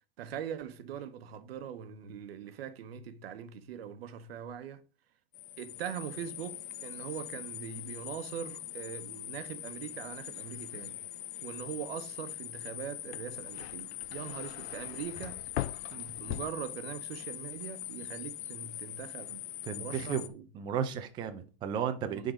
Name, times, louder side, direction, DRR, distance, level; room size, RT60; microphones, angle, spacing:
voice 1, 0.2-4.8 5.6-11.0 11.4-15.4 15.9-20.4 22.0-22.3, right 9 dB, 70° right, 1.1 m, -42 dB
sound 1, 5.3-20.3, left 13 dB, 55° left, 0.8 m, -43 dB
sound 2, 13.0-17.3 17.6-18.2, left 13 dB, 90° left, 0.5 m, -41 dB
voice 2, 19.6-20.3 20.5-22.3, right 8 dB, 15° right, 0.5 m, -34 dB
10.0 x 3.9 x 5.0 m
supercardioid pair, 160°, 31 cm